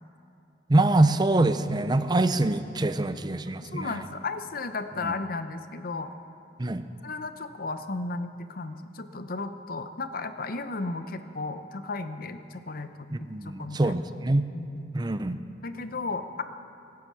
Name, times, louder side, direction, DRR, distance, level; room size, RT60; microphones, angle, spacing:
voice 1, 0.7-4.0 5.0-5.1 6.6-6.8 13.1-14.4 14.9-15.4, right 2 dB, 25° right, 11 dB, 0.6 m, -24 dB
voice 2, 3.6-6.1 7.0-14.0 14.5-14.8 15.6-16.4, left 3 dB, 55° left, 10 dB, 0.8 m, -34 dB
23.0 x 9.7 x 6.2 m, 2.8 s
head